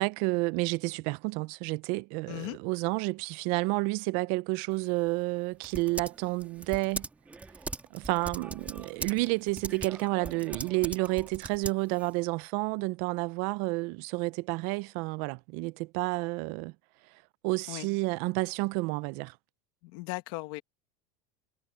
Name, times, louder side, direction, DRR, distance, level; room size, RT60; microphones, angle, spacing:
voice 1, 0.0-7.1 7.9-16.7 17.4-19.4, right 24 dB, 55° right, 0.6 m, -30 dB
voice 2, 2.3-2.6 17.7-17.9 19.8-20.6, left 21 dB, 65° left, 1.7 m, -37 dB
Typing, 4.7-12.2, right 3 dB, 10° right, 1.7 m, -41 dB
cardioid pair, 155°, 16 cm